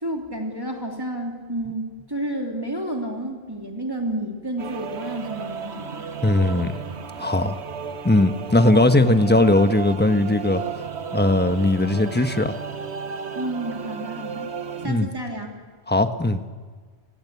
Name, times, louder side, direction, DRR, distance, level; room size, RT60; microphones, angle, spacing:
voice 1, 0.0-6.0 13.3-14.5 14.8-15.5, right 1 dB, 20° right, 1 dB, 3.2 m, -30 dB
sound 1, 4.6-14.9, right 6 dB, 85° right, 1.4 m, -34 dB
voice 2, 6.2-6.7 7.2-7.6 8.0-10.6 11.1-12.6 14.8-15.1 15.9-16.5, left 2 dB, 10° left, 8 dB, 1.1 m, -19 dB
29.0 x 20.5 x 8.4 m, 1.5 s
omnidirectional pair, 1.1 m